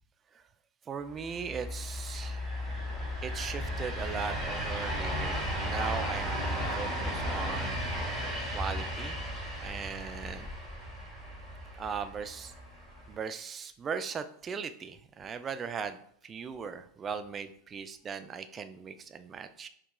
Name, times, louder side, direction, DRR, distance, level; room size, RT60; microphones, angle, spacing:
voice 1, 0.9-2.5 3.2-7.8 8.5-9.2 9.6-10.5 11.8-12.5 13.1-19.7, right 6 dB, 30° right, 9 dB, 0.3 m, -38 dB
sound 1, 1.2-13.1, equal, 5° right, 1.3 m, -35 dB
4.6 x 2.3 x 2.3 m, 0.65 s
hypercardioid pair, 90°, 0 cm